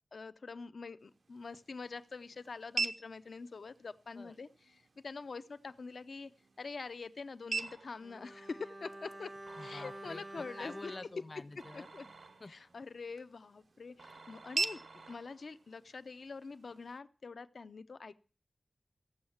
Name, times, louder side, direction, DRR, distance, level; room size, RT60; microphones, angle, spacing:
voice 1, 0.1-6.3 6.6-9.3 9.6-11.0 11.7-12.1 12.5-18.1, left 4 dB, 75° left, 13 dB, 0.6 m, -45 dB
sound 1, 1.0-17.0, right 4 dB, 70° right, 0.8 m, -44 dB
sound 2, 7.6-8.3 9.5-10.4 11.6-12.8 14.0-15.6, right 3 dB, 85° right, 1.5 m, -56 dB
Bowed string instrument, 8.0-12.4 12.7-12.9, right 1 dB, 25° right, 0.6 m, -50 dB
voice 2, 9.6-10.2 10.6-11.9 12.4-12.5, left 2 dB, 40° left, 15 dB, 0.7 m, -47 dB
14.5 x 7.1 x 7.1 m, 0.36 s
wide cardioid pair, 105°, 0 cm